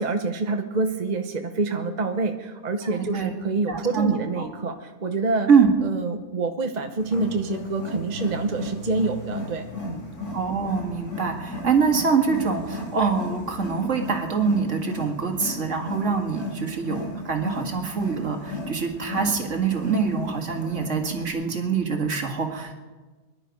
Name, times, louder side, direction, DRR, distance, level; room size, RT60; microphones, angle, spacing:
voice 1, 0.0-5.5 5.8-10.0, right 3 dB, 35° right, 5 dB, 0.9 m, -27 dB
voice 2, 3.7-4.1 4.4-4.5 5.5-5.7 10.3-22.7, right 5 dB, 55° right, 3 dB, 2.1 m, -24 dB
Wild animals, 7.0-21.3, left 1 dB, 85° left, 3.5 m, -35 dB
23.5 x 11.0 x 5.2 m, 1.3 s
omnidirectional pair, 1.6 m